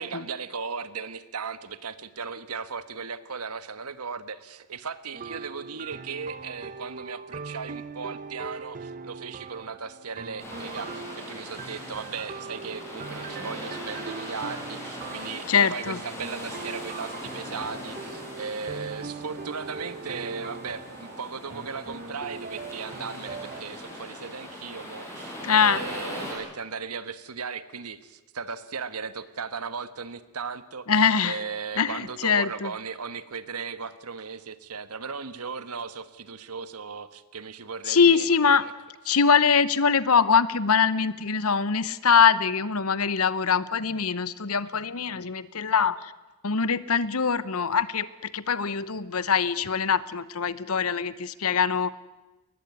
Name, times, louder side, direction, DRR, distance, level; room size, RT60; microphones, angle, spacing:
voice 1, 0.0-30.9 31.2-38.7, right 5 dB, 80° right, 13 dB, 1.4 m, -37 dB
sound 1, 5.1-23.6, right 4 dB, 40° right, 0.8 m, -41 dB
sound 2, 10.4-26.3, equal, 10° left, 7.2 m, -40 dB
voice 2, 15.5-16.0 25.4-25.8 30.9-31.4 31.8-32.7 37.9-38.6 39.0-46.1 46.4-52.0, left 6 dB, 75° left, 17 dB, 1.0 m, -23 dB
21.5 x 20.0 x 9.7 m, 1.1 s
head